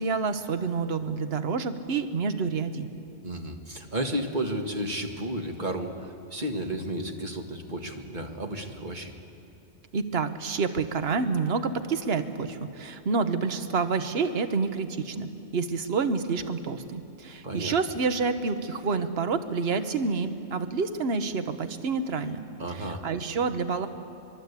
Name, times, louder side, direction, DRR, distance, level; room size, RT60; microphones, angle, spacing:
voice 1, 0.0-2.9 9.9-22.4 22.7-23.9, right 4 dB, 55° right, 9 dB, 1.3 m, -28 dB
voice 2, 3.2-9.1 17.4-17.8 22.6-23.0, right 1 dB, 40° right, 3 dB, 1.8 m, -32 dB
24.0 x 23.0 x 8.3 m, 2.6 s
omnidirectional pair, 1.3 m